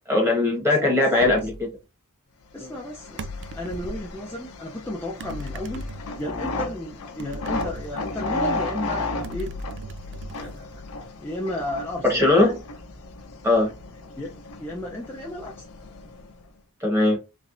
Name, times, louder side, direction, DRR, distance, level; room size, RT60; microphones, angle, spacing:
voice 1, 0.1-1.6 2.6-2.7 12.0-12.6 13.4-13.7 16.8-17.2, left 2 dB, 10° right, 1.4 m, -20 dB
sound 1, 1.2-1.7 3.2-4.1 5.2-6.4 7.2-8.6 9.2-11.1, equal, 55° right, 0.4 m, -37 dB
voice 2, 2.5-3.3 3.5-5.9 6.2-9.6 10.3-10.8 11.2-12.2 14.2-15.5, left 1 dB, 10° left, 0.6 m, -33 dB
sound 2, 2.6-16.5, left 2 dB, 75° left, 0.8 m, -35 dB
3.4 x 3.3 x 2.5 m
head